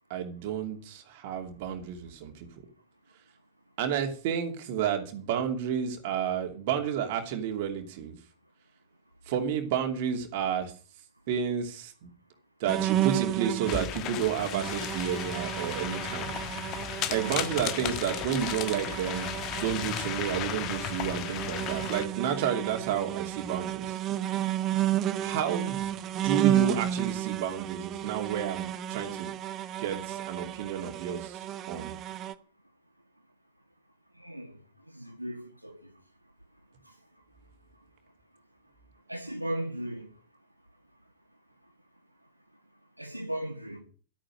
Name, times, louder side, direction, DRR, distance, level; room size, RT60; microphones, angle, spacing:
voice 1, 0.1-2.5 3.8-8.2 9.3-10.7 11.3-11.9 12.6-16.3 17.1-24.0 25.2-26.0 26.2-29.3 29.8-31.9, right 8 dB, 50° right, 2.8 m, -31 dB
sound 1, 12.7-13.9 14.4-32.3, right 12 dB, 35° right, 1.0 m, -32 dB
sound 2, 13.7-22.0, left 10 dB, 40° left, 1.6 m, -35 dB
voice 2, 35.0-35.7 39.1-40.1 43.0-43.8, right 1 dB, 90° right, 2.1 m, -36 dB
13.0 x 9.0 x 6.6 m
figure-of-eight pair, 90°, 0 cm